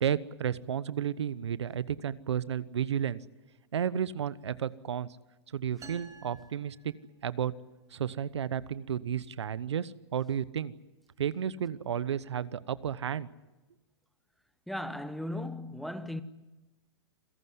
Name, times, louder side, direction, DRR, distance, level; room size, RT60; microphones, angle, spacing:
voice 1, 0.0-3.2 3.7-5.1 5.5-6.9 7.2-7.5 7.9-10.7 11.2-13.3, right 9 dB, 85° right, 1.0 m, -32 dB
sound 1, 5.8-7.6, right 4 dB, 20° right, 3.2 m, -52 dB
voice 2, 14.7-16.2, left 1 dB, ahead, 1.2 m, -36 dB
27.5 x 16.5 x 9.6 m
hypercardioid pair, 130°, 14 cm